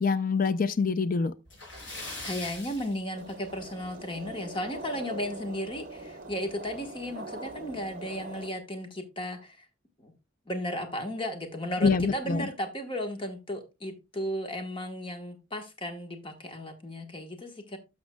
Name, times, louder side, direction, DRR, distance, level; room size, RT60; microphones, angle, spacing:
voice 1, 0.0-1.3 11.8-12.5, left 5 dB, 45° left, 0.4 m, -25 dB
Splash splatter, 1.5-3.8 4.1-4.3 4.8-4.9 6.3-6.4 6.7-6.8 7.4-7.7, left 2 dB, 80° left, 5.2 m, -41 dB
voice 2, 1.9-9.7 10.0-10.1 10.5-17.8, equal, 25° left, 1.2 m, -35 dB
sound 1, 3.1-8.5, right 2 dB, 45° right, 1.2 m, -42 dB
12.5 x 6.1 x 2.2 m
head